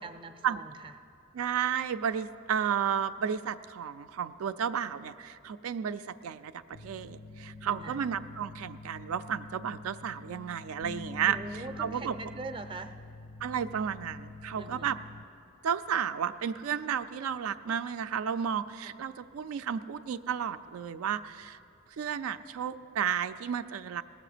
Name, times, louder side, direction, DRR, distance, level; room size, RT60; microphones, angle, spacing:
voice 1, 0.0-0.9 7.7-8.0 11.2-12.9 14.6-15.0 18.8-19.0, right 3 dB, 25° right, 8 dB, 0.5 m, -43 dB
voice 2, 1.3-12.1 13.4-15.0 15.6-21.6 22.0-24.0, right 8 dB, 85° right, 10 dB, 0.4 m, -32 dB
sound 1, 6.7-15.3, left 3 dB, 65° left, 0.5 m, -46 dB
19.0 x 7.7 x 5.0 m, 2.5 s
head